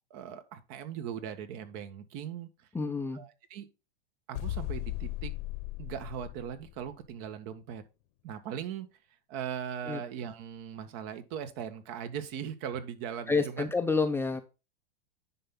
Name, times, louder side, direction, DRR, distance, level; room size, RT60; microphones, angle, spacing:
voice 1, 0.1-2.7 3.1-3.7 4.3-5.3 5.8-7.8 8.2-8.9 9.3-13.7, right 8 dB, 45° right, 1.7 m, -39 dB
voice 2, 2.7-3.2 9.9-10.0 13.3-14.4, left 4 dB, 10° left, 0.7 m, -28 dB
sound 1, 4.3-7.1, left 16 dB, 55° left, 1.2 m, -37 dB
10.0 x 5.8 x 3.9 m
hypercardioid pair, 120°, 30 cm